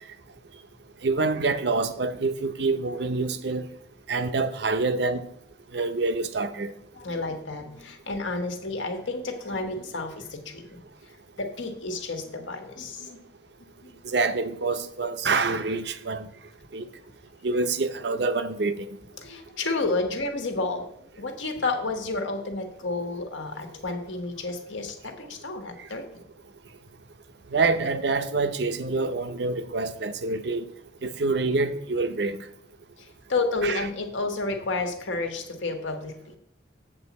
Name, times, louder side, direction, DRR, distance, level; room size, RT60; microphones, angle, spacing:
voice 1, 1.0-3.7 4.1-5.3 5.7-6.7 14.1-16.3 16.7-16.8 17.4-18.9 27.5-30.7 31.0-32.4 33.6-33.8, right 3 dB, 60° right, 0.6 m, -26 dB
voice 2, 6.9-10.8 11.4-13.2 13.8-14.0 16.8-16.9 19.2-20.9 21.2-26.2 33.0-36.3, left 3 dB, 80° left, 1.5 m, -31 dB
7.9 x 7.3 x 4.2 m
head